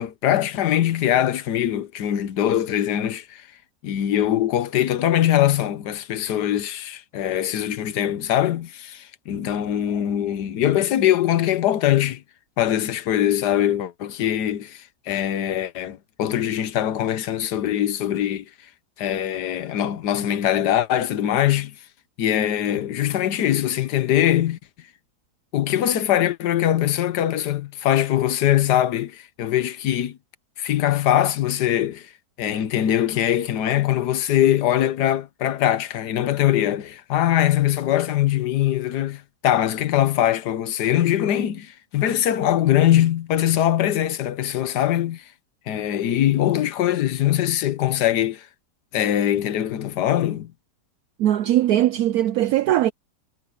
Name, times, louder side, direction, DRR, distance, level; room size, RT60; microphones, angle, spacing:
voice 1, 0.0-3.5 3.8-12.2 12.6-18.4 19.0-21.7 22.2-24.6 25.5-30.2 30.6-32.1 32.4-45.2 45.7-48.5 48.9-50.5, left 11 dB, 75° left, 1.5 m, -22 dB
voice 2, 51.2-52.9, right 13 dB, 70° right, 1.0 m, -20 dB
omnidirectional pair, 1.8 m